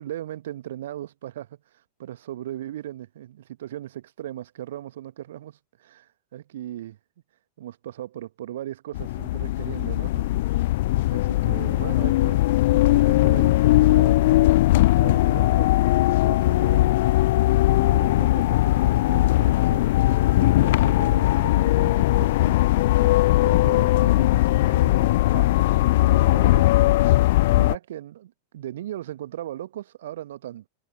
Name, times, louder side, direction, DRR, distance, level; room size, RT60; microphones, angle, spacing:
voice 1, 0.0-7.0 7.6-10.3 10.9-14.5 14.9-15.7 16.0-17.0 17.7-23.1 23.4-27.0 27.4-30.7, right 12 dB, 60° right, 1.6 m, -38 dB
sound 1, 8.9-27.8, left 17 dB, 55° left, 0.4 m, -19 dB
figure-of-eight pair, 90°, 0 cm